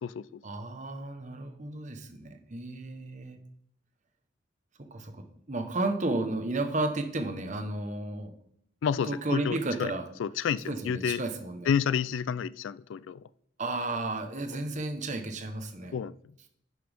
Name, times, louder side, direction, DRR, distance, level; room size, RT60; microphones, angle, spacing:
voice 1, 0.4-3.4 4.8-8.3 9.0-10.1 10.7-11.7 13.6-16.0, right 2 dB, 40° right, 7 dB, 1.0 m, -33 dB
voice 2, 8.8-9.9 10.2-11.2 11.7-13.2 15.9-16.1, left 7 dB, 75° left, 19 dB, 0.3 m, -29 dB
11.0 x 6.0 x 3.5 m, 0.70 s
head